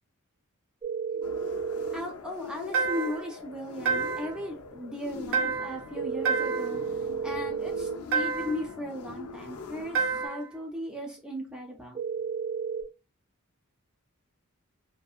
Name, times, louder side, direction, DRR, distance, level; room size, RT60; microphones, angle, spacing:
Ring Tone, 0.8-2.0 5.9-8.0 11.9-12.8, right 6 dB, 30° right, 0.8 m, -32 dB
sound 1, 1.2-10.3, left 4 dB, 80° left, 0.5 m, -42 dB
voice 1, 1.9-6.8 7.2-12.0, equal, 5° right, 0.4 m, -37 dB
sound 2, 2.7-3.3 3.8-4.4 5.3-5.9 6.2-6.8 8.1-8.7 9.9-10.5, right 5 dB, 65° right, 0.6 m, -29 dB
2.6 x 2.5 x 2.3 m
head